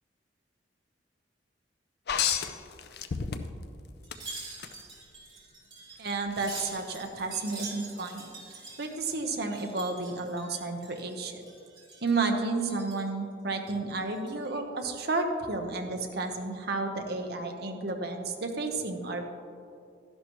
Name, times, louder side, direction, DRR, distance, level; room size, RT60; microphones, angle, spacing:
sound 1, 2.1-3.7 4.1-4.7 6.3-6.4, left 7 dB, 60° left, 0.5 m, -30 dB
Wind chime, 4.0-11.1 11.4-12.2 12.6-13.1 13.6-14.5 14.9-15.0, right 3 dB, 25° right, 2.9 m, -45 dB
voice 1, 6.0-11.4 12.0-19.2, right 3 dB, 60° right, 4 dB, 0.9 m, -32 dB
12.0 x 11.0 x 3.1 m, 2.5 s
head